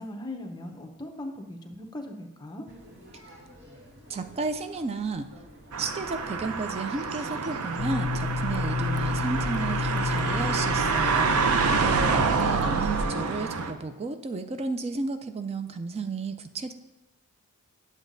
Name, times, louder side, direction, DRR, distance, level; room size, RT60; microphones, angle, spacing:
voice 1, 0.0-2.7, left 1 dB, 20° left, 4 dB, 0.7 m, -39 dB
sound 1, 2.7-10.2, equal, 60° right, 1.9 m, -51 dB
voice 2, 4.1-5.3 5.8-11.4 11.8-16.7, right 3 dB, 30° right, 9 dB, 0.4 m, -32 dB
sound 2, 5.7-13.7, right 4 dB, 80° right, 0.6 m, -27 dB
sound 3, 7.8-13.0, left 3 dB, 85° left, 0.4 m, -31 dB
9.8 x 7.2 x 2.6 m, 1.0 s
head